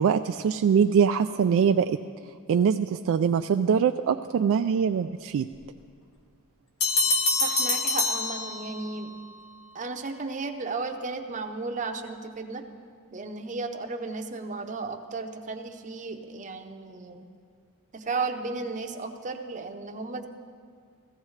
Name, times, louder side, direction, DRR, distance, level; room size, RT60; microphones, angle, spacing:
voice 1, 0.0-2.0 2.5-5.5, right 7 dB, 60° right, 7 dB, 0.3 m, -23 dB
sound 1, 6.8-9.0, left 3 dB, 70° left, 1.2 m, -26 dB
voice 2, 7.4-9.1 9.7-12.6 13.1-17.3 17.9-20.3, right 3 dB, 35° right, 4 dB, 0.7 m, -34 dB
15.5 x 15.0 x 3.2 m, 2.1 s
head